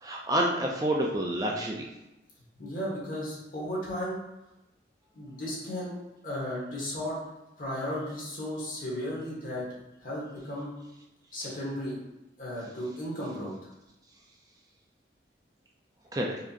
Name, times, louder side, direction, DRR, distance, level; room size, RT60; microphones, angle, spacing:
voice 1, 0.0-1.8 16.1-16.4, right 1 dB, 20° right, -1 dB, 0.4 m, -28 dB
voice 2, 2.6-4.2 5.1-5.9 6.2-7.2 7.6-9.6 10.0-10.7 11.3-12.0 12.4-13.5, equal, 50° left, -5 dB, 1.4 m, -34 dB
4.8 x 2.8 x 2.5 m, 0.97 s
head